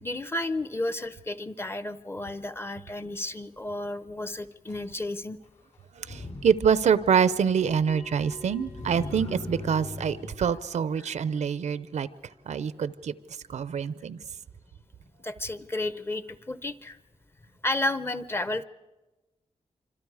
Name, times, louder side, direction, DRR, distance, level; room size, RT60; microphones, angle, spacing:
voice 1, 0.0-5.4 15.2-17.0 17.6-18.6, left 2 dB, 20° left, 14 dB, 0.7 m, -32 dB
Motor vehicle (road), 4.7-4.8 6.0-10.3, left 2 dB, 80° left, 3.8 m, -40 dB
voice 2, 5.9-12.1 12.5-13.1 13.5-14.2, right 7 dB, 85° right, 16 dB, 0.7 m, -25 dB
Bell, 7.9-12.9, left 2 dB, 60° left, 2.1 m, -51 dB
26.5 x 26.0 x 4.9 m, 1.1 s
wide cardioid pair, 150°, 12 cm